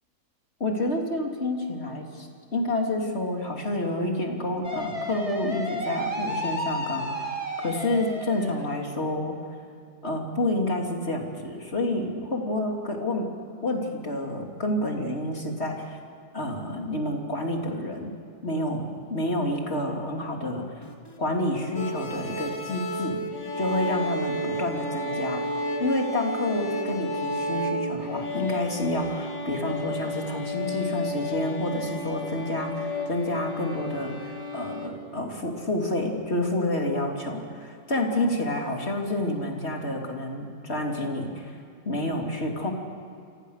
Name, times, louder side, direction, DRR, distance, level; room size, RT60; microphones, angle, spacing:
voice 1, 0.6-9.4 10.0-13.3 13.6-16.0 16.3-18.1 18.4-18.8 19.1-20.9 21.2-23.2 23.6-25.4 25.8-42.7, left 1 dB, 40° left, 1 dB, 3.4 m, -29 dB
sound 1, 4.6-8.7, equal, 20° right, 2.4 m, -32 dB
sound 2, 20.8-21.4 22.9-23.3 23.6-24.2 26.7-27.0, left 2 dB, 15° left, 2.8 m, -50 dB
sound 3, 21.7-34.9, left 1 dB, 80° left, 3.2 m, -32 dB
29.0 x 24.5 x 6.6 m, 2.4 s
omnidirectional pair, 1.7 m